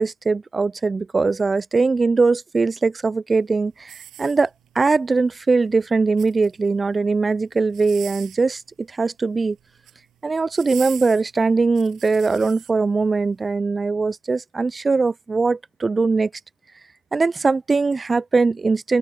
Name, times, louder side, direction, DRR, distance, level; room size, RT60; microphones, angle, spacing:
voice 1, 0.0-4.5 4.7-8.6 8.9-9.6 10.2-16.3 17.1-19.0, right 4 dB, 10° right, 0.7 m, -21 dB
sound 1, 3.8-4.8 5.9-6.7 7.7-8.5 9.6-10.0 10.5-12.7 13.3-13.4, right 12 dB, 30° right, 7.8 m, -41 dB
hypercardioid pair, 115°, 0 cm